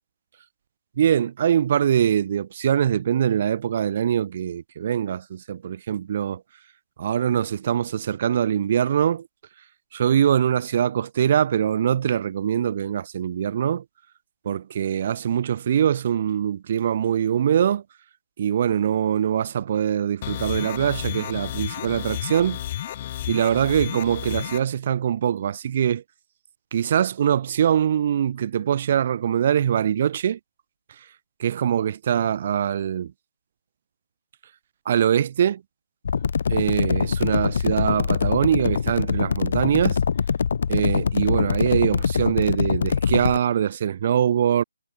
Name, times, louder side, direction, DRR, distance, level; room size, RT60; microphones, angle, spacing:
voice 1, 1.0-6.4 7.0-9.3 9.9-13.8 14.4-17.8 18.4-22.6 23.3-26.0 26.7-30.4 31.4-33.1 34.9-35.6 36.5-40.0 40.7-44.6, right 9 dB, 30° right, 0.9 m, -23 dB
sound 1, 20.2-24.6, left 12 dB, 20° left, 2.1 m, -32 dB
sound 2, 36.1-43.4, left 6 dB, 40° left, 0.4 m, -23 dB
hypercardioid pair, 175°, 0 cm